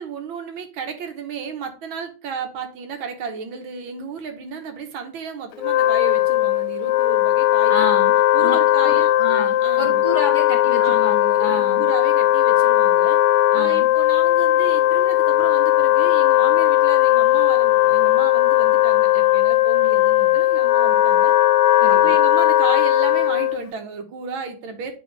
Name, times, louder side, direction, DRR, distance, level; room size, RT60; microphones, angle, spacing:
voice 1, 0.0-7.9 8.3-9.1 9.6-10.0 10.8-11.0 11.4-13.2 13.5-21.3 21.9-24.9, right 6 dB, 80° right, 6 dB, 1.9 m, -33 dB
Wind instrument woodwind instrument, 5.5-23.7, left 14 dB, 85° left, 1.4 m, -17 dB
voice 2, 7.7-8.1 8.4-11.8 13.5-13.9 21.8-22.1, left 3 dB, 25° left, 0 dB, 1.5 m, -29 dB
9.9 x 3.6 x 3.2 m, 0.36 s
omnidirectional pair, 2.2 m